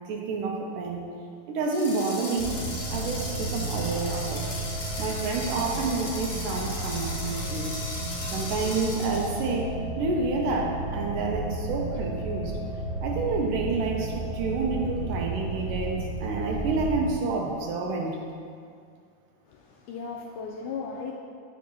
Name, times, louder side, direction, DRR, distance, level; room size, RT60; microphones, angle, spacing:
voice 1, 0.1-1.1 1.5-2.6 2.9-4.4 5.0-7.7 8.3-12.5 13.0-18.2, right 3 dB, 80° right, 0 dB, 2.2 m, -29 dB
sound 1, 1.6-9.5, left 2 dB, 55° left, 2.6 m, -37 dB
sound 2, 2.4-17.0, right 2 dB, 50° right, 2.8 m, -33 dB
voice 2, 19.5-21.1, left 5 dB, 80° left, 0 dB, 1.8 m, -36 dB
7.3 x 7.1 x 2.9 m, 2.2 s
omnidirectional pair, 4.0 m